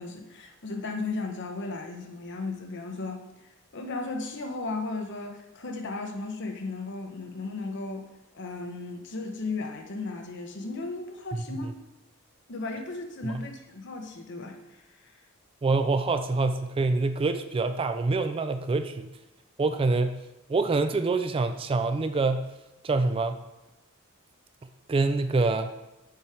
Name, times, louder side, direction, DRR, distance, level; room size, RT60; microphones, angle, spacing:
voice 1, 0.0-3.2 3.7-8.1 8.3-11.7 12.5-14.6 15.0-15.1, left 3 dB, 55° left, 4 dB, 0.9 m, -35 dB
voice 2, 15.6-19.1 19.6-20.2 20.5-22.5 22.8-23.4 24.9-25.7, right 3 dB, 25° right, 9 dB, 0.3 m, -26 dB
7.1 x 4.9 x 4.4 m, 1.0 s
head